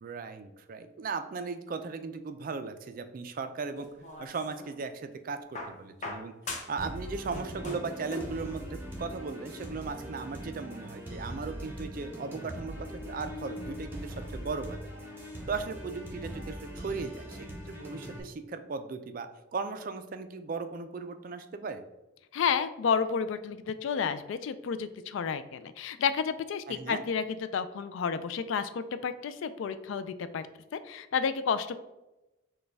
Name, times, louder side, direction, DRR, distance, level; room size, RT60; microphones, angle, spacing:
voice 1, 0.0-3.9 4.2-6.3 6.7-14.8 15.5-21.8 26.7-27.0, right 4 dB, 40° right, 9 dB, 0.3 m, -37 dB
sound 1, 3.8-4.8 5.5-6.9 7.2-8.4 9.5-9.6, left 2 dB, 35° left, 0.7 m, -40 dB
sound 2, 6.8-18.2, equal, 10° right, 0.7 m, -41 dB
voice 2, 22.3-30.4 30.7-31.8, left 6 dB, 65° left, 12 dB, 0.3 m, -31 dB
6.3 x 2.2 x 3.3 m, 0.99 s
head